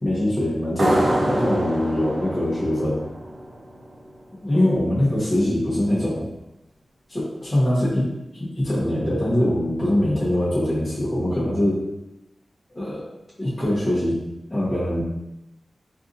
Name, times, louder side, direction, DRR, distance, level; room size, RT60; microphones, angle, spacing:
voice 1, 0.0-3.0 4.4-6.3 7.1-8.1 8.4-11.8 12.7-13.1 13.4-14.2 14.5-15.0, left 1 dB, 30° left, -10 dB, 1.2 m, -22 dB
sound 1, 0.8-4.1, right 1 dB, 70° right, 0.6 m, -25 dB
3.4 x 2.6 x 2.6 m, 0.91 s
wide cardioid pair, 75°, 0 cm